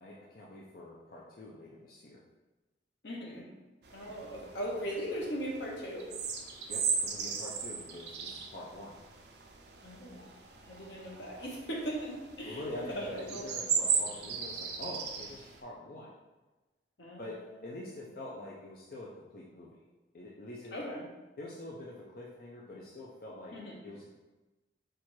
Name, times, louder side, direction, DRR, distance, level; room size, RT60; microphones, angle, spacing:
voice 1, 0.0-2.2 6.7-8.9 12.5-16.1 17.2-19.8 20.1-20.8 21.4-23.5 23.8-24.2, left 1 dB, 50° left, -5 dB, 0.5 m, -45 dB
voice 2, 3.0-3.5 3.9-6.1 9.8-10.3 10.7-12.6 12.9-13.5 17.0-17.3 20.7-21.1 23.5-23.8, equal, 75° left, -2 dB, 1.0 m, -39 dB
sound 1, 3.8-15.6, right 6 dB, 60° right, 0.6 m, -37 dB
4.5 x 2.5 x 4.5 m, 1.1 s
head